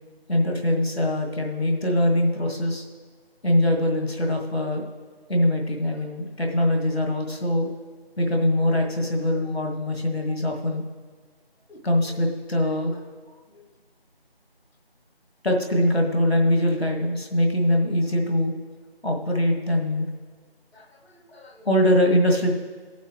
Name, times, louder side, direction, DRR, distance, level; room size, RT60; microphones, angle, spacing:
voice 1, 0.3-2.9 3.4-4.8 5.3-7.7 8.2-10.8 11.7-13.6 15.4-18.5 19.0-20.1 20.7-22.5, left 1 dB, 80° left, 2 dB, 1.9 m, -23 dB
15.5 x 8.2 x 3.2 m, 1.5 s
figure-of-eight pair, 175°, 31 cm